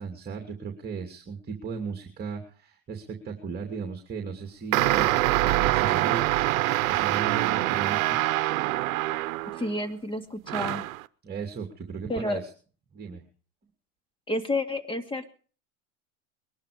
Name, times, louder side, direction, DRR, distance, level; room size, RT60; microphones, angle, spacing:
voice 1, 0.0-8.2 11.2-12.4 12.9-13.2, right 5 dB, 25° right, 3 dB, 2.7 m, -36 dB
sound 1, 4.7-9.8 10.5-11.0, right 17 dB, 90° right, 0.8 m, -25 dB
voice 2, 9.4-10.8 12.1-12.4 14.3-15.3, left 1 dB, 15° left, 7 dB, 2.3 m, -30 dB
22.0 x 12.0 x 5.1 m, 0.42 s
supercardioid pair, 125°, 40 cm